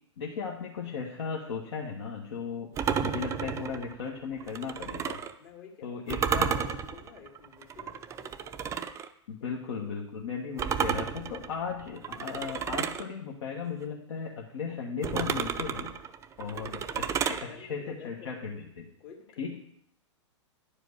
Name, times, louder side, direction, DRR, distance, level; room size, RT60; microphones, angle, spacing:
voice 1, 0.2-2.7 3.0-5.2 5.8-6.5 9.3-16.0 16.4-18.9 19.4-19.6, left 6 dB, 65° left, -1 dB, 1.4 m, -36 dB
sound 1, 2.8-5.3 6.1-9.1 10.6-13.1 15.0-17.4, right 7 dB, 20° right, 0.5 m, -32 dB
voice 2, 5.4-8.8 9.4-10.0 16.5-18.7 19.0-19.6, left 6 dB, 50° left, 1 dB, 2.4 m, -51 dB
10.0 x 5.0 x 6.5 m, 0.74 s
hypercardioid pair, 115°, 15 cm